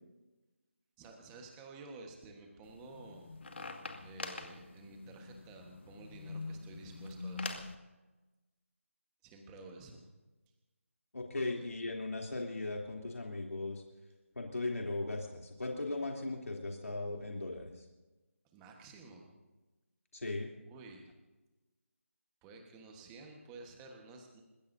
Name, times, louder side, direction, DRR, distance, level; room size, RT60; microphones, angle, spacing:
voice 1, 1.0-3.4 4.0-7.7 9.2-10.0 11.6-11.7 18.5-19.3 20.6-21.1 22.4-24.4, right 3 dB, 10° right, 2 dB, 1.3 m, -52 dB
sound 1, 2.6-7.7, left 3 dB, 50° left, 2.0 m, -44 dB
voice 2, 11.1-13.8 14.3-17.8 20.1-20.5, left 2 dB, 90° left, 0 dB, 3.1 m, -38 dB
29.5 x 16.0 x 2.7 m, 1.1 s
figure-of-eight pair, 175°, 8 cm